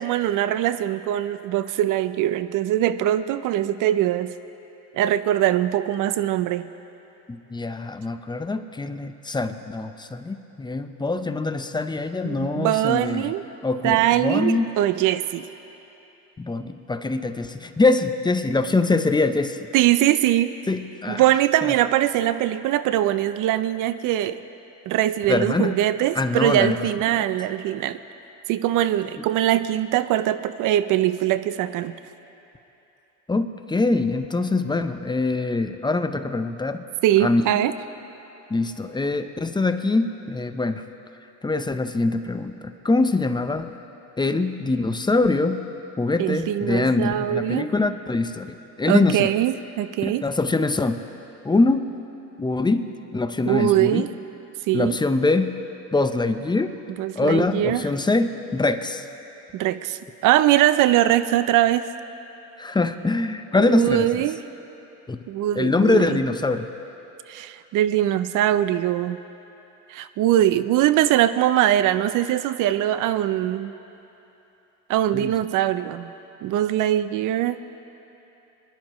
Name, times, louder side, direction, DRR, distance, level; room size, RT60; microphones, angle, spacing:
voice 1, 0.0-4.3 4.9-6.7 12.2-13.4 13.8-15.5 19.7-20.5 21.1-24.4 24.9-28.0 28.5-31.9 37.0-37.7 46.2-47.7 48.9-50.2 53.5-54.1 54.7-55.0 57.0-57.8 59.5-61.9 63.6-64.4 65.3-66.2 67.3-69.2 69.9-73.7 74.9-76.1 76.4-77.6, right 13 dB, 60° right, 13 dB, 0.6 m, -22 dB
voice 2, 7.3-13.3 13.6-14.7 16.4-19.7 20.7-21.2 21.6-21.8 25.3-25.7 26.1-26.8 27.1-27.2 29.2-29.3 33.3-36.8 37.2-37.4 38.5-40.8 41.4-43.8 44.2-45.6 46.0-49.3 50.0-51.0 51.4-51.9 52.4-54.1 54.7-55.5 55.9-56.8 57.2-59.0 62.6-64.2 65.1-65.2 65.6-66.7 75.1-75.3, left 3 dB, 10° left, 8 dB, 0.7 m, -23 dB
25.5 x 11.0 x 3.1 m, 3.0 s
supercardioid pair, 95°, 37 cm